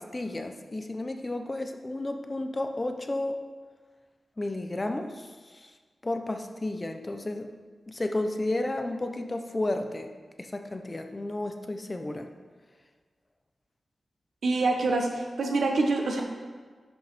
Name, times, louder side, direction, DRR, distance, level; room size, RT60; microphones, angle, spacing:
voice 1, 0.0-3.4 4.4-5.7 6.0-7.5 7.9-10.1 10.4-12.3, left 2 dB, 25° left, 6 dB, 0.8 m, -32 dB
voice 2, 14.4-16.2, right 3 dB, 85° right, 2 dB, 1.2 m, -26 dB
10.5 x 5.5 x 4.4 m, 1.5 s
wide cardioid pair, 95°, 0 cm